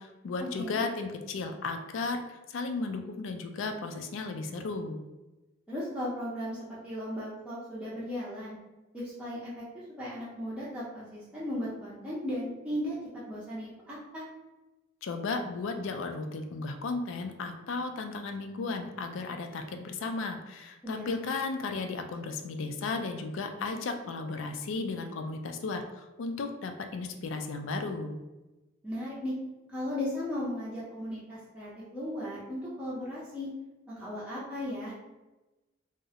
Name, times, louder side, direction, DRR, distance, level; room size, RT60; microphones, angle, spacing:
voice 1, 0.0-5.0 15.0-28.2, left 3 dB, 70° left, 6 dB, 0.3 m, -35 dB
voice 2, 5.7-8.6 8.9-13.0 13.3-14.2 20.8-21.1 28.8-29.3 29.7-33.5 33.9-34.9, left 1 dB, 5° right, -9 dB, 0.4 m, -36 dB
2.3 x 2.0 x 2.7 m, 1.1 s
head